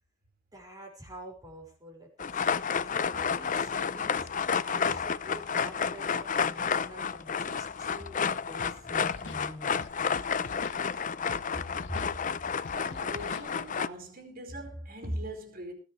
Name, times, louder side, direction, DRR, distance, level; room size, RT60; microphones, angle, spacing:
voice 1, 0.5-2.4 2.8-9.8 11.5-12.1, equal, 20° right, 5.5 m, -45 dB
sound 1, 2.2-13.9, left 6 dB, 40° left, 0.6 m, -31 dB
Scratching (performance technique), 8.6-8.8 9.0-9.4 9.8-10.8 11.3-11.4 11.7-12.1 12.6-13.5, left 3 dB, 70° left, 0.9 m, -45 dB
voice 2, 12.7-15.7, right 1 dB, 50° right, 4.7 m, -40 dB
20.0 x 13.5 x 3.3 m
head